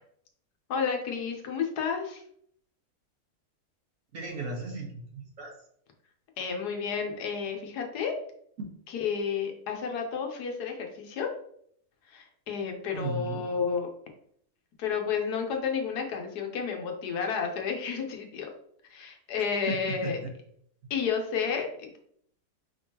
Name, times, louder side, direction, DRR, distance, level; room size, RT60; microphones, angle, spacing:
voice 1, 0.7-2.2 6.4-8.2 9.0-11.3 12.1-13.9 14.8-18.5 18.9-20.2 20.9-22.0, left 6 dB, 85° left, 3 dB, 1.4 m, -31 dB
voice 2, 4.1-5.5 8.6-8.7 12.9-13.5 19.4-20.3, right 2 dB, 60° right, 0 dB, 1.4 m, -36 dB
5.3 x 3.6 x 2.8 m, 0.66 s
omnidirectional pair, 1.7 m